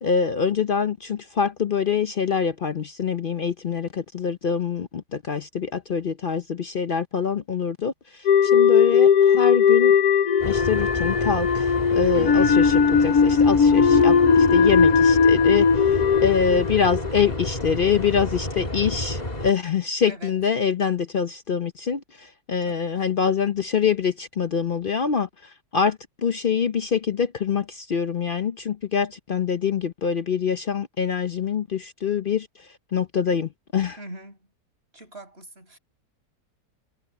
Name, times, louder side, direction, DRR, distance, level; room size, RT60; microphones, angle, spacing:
voice 1, 0.0-9.9 10.4-25.3 25.7-32.5 32.9-34.0, left 6 dB, 50° left, 0.6 m, -25 dB
sound 1, 8.3-17.5, left 6 dB, 70° left, 1.4 m, -18 dB
sound 2, 10.4-19.5, left 1 dB, 25° left, 3.0 m, -31 dB
voice 2, 12.1-12.6 20.1-20.3 22.6-22.8 23.1-23.3 34.0-34.4 34.9-35.8, right 1 dB, 40° right, 6.4 m, -41 dB
omnidirectional pair, 1.7 m